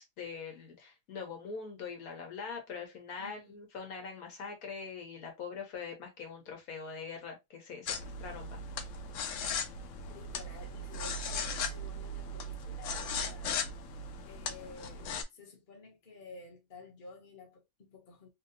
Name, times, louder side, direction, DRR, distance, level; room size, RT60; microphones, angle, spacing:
voice 1, 0.0-8.6, left 5 dB, 85° left, 1.5 m, -43 dB
voice 2, 3.2-3.6 10.0-13.5 14.3-18.3, left 3 dB, 40° left, 1.0 m, -52 dB
sound 1, 7.9-15.2, left 3 dB, 65° left, 0.8 m, -38 dB
3.1 x 2.8 x 2.6 m
omnidirectional pair, 1.5 m